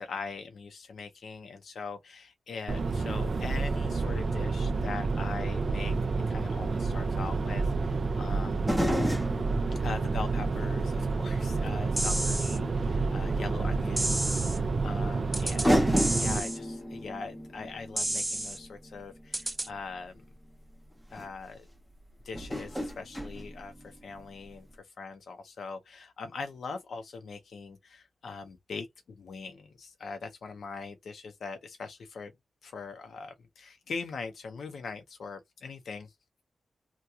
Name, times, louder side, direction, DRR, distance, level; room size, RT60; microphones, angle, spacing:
voice 1, 0.0-5.9 6.3-8.7 9.8-20.2 21.1-21.7 22.2-32.3 32.6-36.1, left 4 dB, 75° left, 0.6 m, -41 dB
sound 1, 2.7-16.4, right 4 dB, 45° right, 0.4 m, -29 dB
sound 2, 6.5-6.6 8.6-11.6 12.0-12.1 13.7-13.8 15.0-15.1 15.6-19.7 20.7-20.8 21.1-21.3 22.3-24.3 24.5-24.6, equal, 5° left, 0.9 m, -32 dB
sound 3, 12.0-12.6 14.0-14.6 15.3-15.7 16.0-16.6 18.0-18.6 19.3-19.7, right 1 dB, 15° right, 0.8 m, -31 dB
2.9 x 2.2 x 3.5 m
wide cardioid pair, 90°, 0 cm